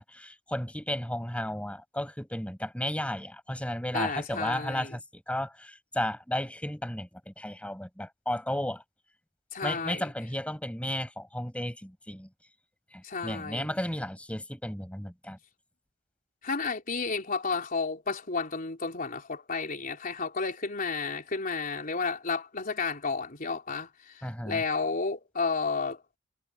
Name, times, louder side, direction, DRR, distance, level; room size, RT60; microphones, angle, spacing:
voice 1, 0.0-8.8 9.6-12.3 12.9-15.4 24.2-24.6, left 1 dB, 5° left, 5.4 m, -34 dB
voice 2, 3.9-5.0 9.5-10.0 13.0-13.7 16.4-26.0, left 4 dB, 45° left, 3.7 m, -32 dB
head